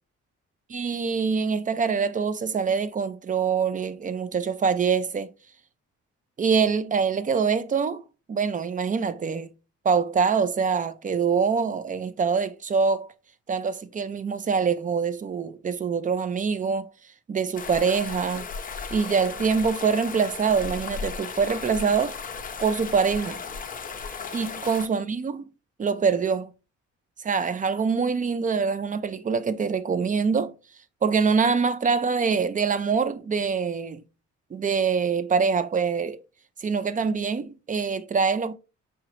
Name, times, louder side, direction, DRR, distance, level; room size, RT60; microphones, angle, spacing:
voice 1, 0.7-5.3 6.4-8.0 8.3-9.5 9.8-13.1 13.5-16.9 17.3-18.4 18.9-22.2 22.6-23.4 24.3-25.4 25.8-26.5 27.2-30.5 31.0-34.0 34.5-36.2 36.6-38.5, right 5 dB, 25° right, 0.4 m, -24 dB
sound 1, 17.6-24.9, left 5 dB, 30° left, 0.6 m, -36 dB
4.8 x 2.9 x 2.9 m
cardioid pair, 90°, 30 cm